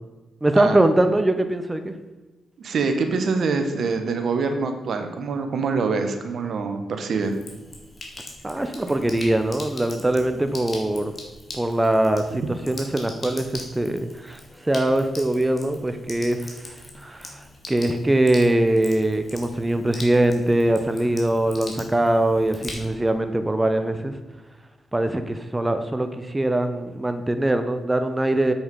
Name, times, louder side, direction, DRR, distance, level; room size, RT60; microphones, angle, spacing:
voice 1, 0.4-1.9 8.4-11.1 11.5-24.2 24.9-28.5, right 1 dB, 15° right, 8 dB, 0.9 m, -22 dB
voice 2, 2.6-7.3, right 4 dB, 65° right, 6 dB, 1.2 m, -25 dB
Sink (filling or washing), 7.2-23.2, left 2 dB, 40° left, 2.6 m, -41 dB
7.9 x 7.0 x 5.3 m, 1.2 s
supercardioid pair, 55°, 0 cm